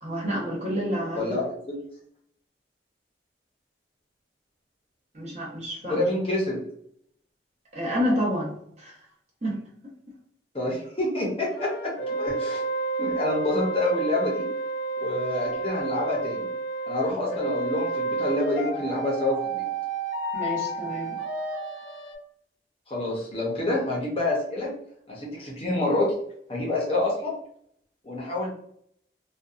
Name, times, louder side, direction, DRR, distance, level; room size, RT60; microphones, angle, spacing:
voice 1, 0.0-1.4 5.1-6.1 7.7-8.9 9.4-9.6 17.1-17.2 20.3-21.2, equal, 40° right, -3 dB, 0.8 m, -29 dB
voice 2, 1.2-1.7 5.9-6.6 10.5-11.9 12.2-12.6 13.0-14.5 15.0-16.5 16.9-19.6 22.9-24.7 25.1-26.2 26.5-27.3 28.0-28.5, left 2 dB, 30° left, -2 dB, 0.6 m, -27 dB
sound 1, 11.6-22.2, right 3 dB, 70° left, 0.4 m, -30 dB
2.6 x 2.2 x 2.4 m, 0.67 s
head